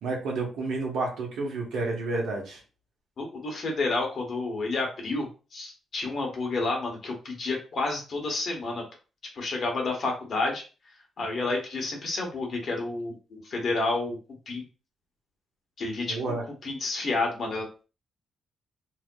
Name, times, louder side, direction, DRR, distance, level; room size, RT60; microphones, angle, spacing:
voice 1, 0.0-2.6 16.1-16.4, right 3 dB, 85° right, -1 dB, 1.1 m, -30 dB
voice 2, 3.2-8.8 9.3-10.6 11.2-14.2 14.5-14.6 15.8-16.2 16.6-17.8, left 3 dB, 50° left, 1 dB, 1.2 m, -30 dB
3.5 x 2.8 x 2.2 m, 0.33 s
cardioid pair, 120°, 0 cm